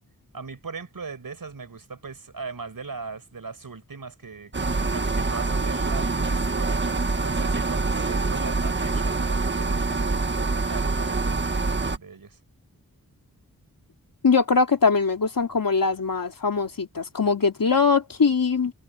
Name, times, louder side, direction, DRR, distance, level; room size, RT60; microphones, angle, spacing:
voice 1, 0.3-12.4, right 4 dB, 70° right, 6.1 m, -39 dB
sound 1, 4.5-12.0, right 3 dB, 30° right, 1.5 m, -25 dB
voice 2, 14.2-18.7, left 5 dB, 70° left, 3.2 m, -22 dB
wide cardioid pair, 95°, 35 cm